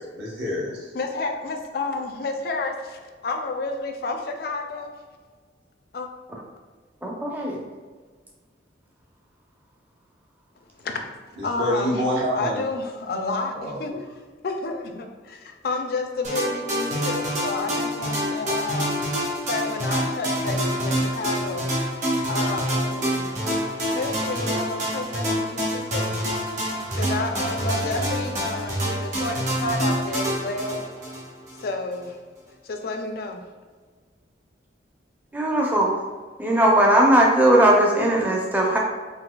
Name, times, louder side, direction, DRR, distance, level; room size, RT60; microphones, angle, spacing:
voice 1, 0.1-0.9 11.4-12.6 13.5-14.0, equal, 65° right, -4 dB, 0.9 m, -27 dB
voice 2, 0.9-4.9 5.9-6.1 10.8-11.0 11.4-12.0 12.3-13.9 14.4-18.9 19.5-21.7 22.3-23.3 24.0-32.2 32.6-33.4, left 3 dB, 55° left, 4 dB, 0.4 m, -30 dB
voice 3, 7.0-7.6 35.3-35.9 36.4-38.8, right 1 dB, 10° right, -2 dB, 0.4 m, -18 dB
sound 1, 16.2-31.7, equal, 40° right, 1.0 m, -26 dB
3.9 x 2.6 x 2.2 m, 1.4 s
head